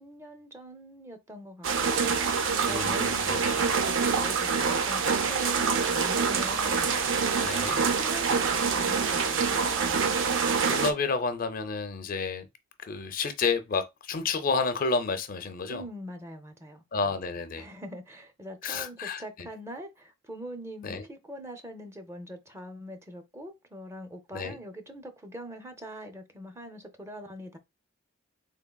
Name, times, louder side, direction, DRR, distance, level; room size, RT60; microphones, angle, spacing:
voice 1, 0.0-2.1 2.7-6.9 7.7-10.0 15.7-16.8 17.6-27.6, equal, 15° right, 0.5 m, -43 dB
sound 1, 1.6-10.9, right 5 dB, 65° right, 0.5 m, -26 dB
voice 2, 2.6-3.6 7.4-7.8 10.6-12.5 12.8-15.8 16.9-17.7 18.6-19.5 20.8-21.0 24.3-24.6, left 4 dB, 45° left, 0.5 m, -30 dB
3.6 x 3.6 x 2.2 m
head